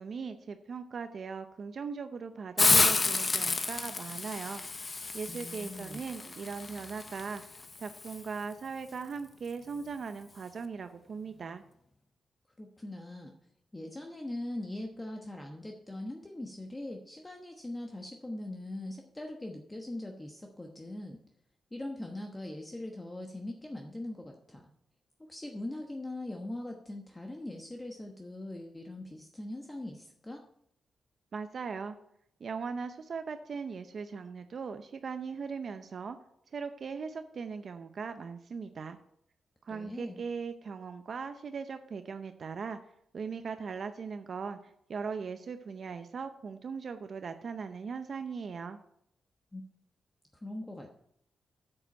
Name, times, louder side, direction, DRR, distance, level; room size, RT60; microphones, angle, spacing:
voice 1, 0.0-4.6 5.1-7.4 7.8-11.6 31.3-32.0 32.4-36.2 36.5-39.0 39.6-42.8 43.1-48.8, right 5 dB, 55° right, 8 dB, 0.6 m, -39 dB
Hiss, 2.6-8.2, left 3 dB, 30° left, 0.6 m, -30 dB
voice 2, 5.3-6.0 12.6-13.3 13.7-21.2 21.7-24.6 25.3-30.4 39.7-40.2 49.5-49.6 50.3-50.9, left 1 dB, 15° left, 2 dB, 1.1 m, -41 dB
8.9 x 7.7 x 5.4 m, 0.72 s
cardioid pair, 100°, 0 cm